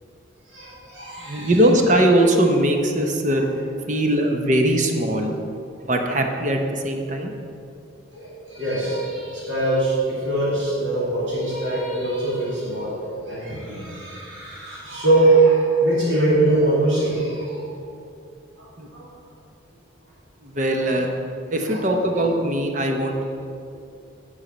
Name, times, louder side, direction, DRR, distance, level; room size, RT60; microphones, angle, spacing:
voice 1, 0.5-1.5 8.1-17.7 18.6-18.7 18.9-19.0 21.7-21.8, right 2 dB, 65° right, -8 dB, 2.5 m, -22 dB
voice 2, 1.2-3.5 3.9-5.4 5.8-7.3 18.8-18.9 20.4-21.1 21.5-23.2, right 1 dB, 40° right, 3 dB, 0.8 m, -20 dB
9.5 x 5.6 x 6.2 m, 2.5 s
head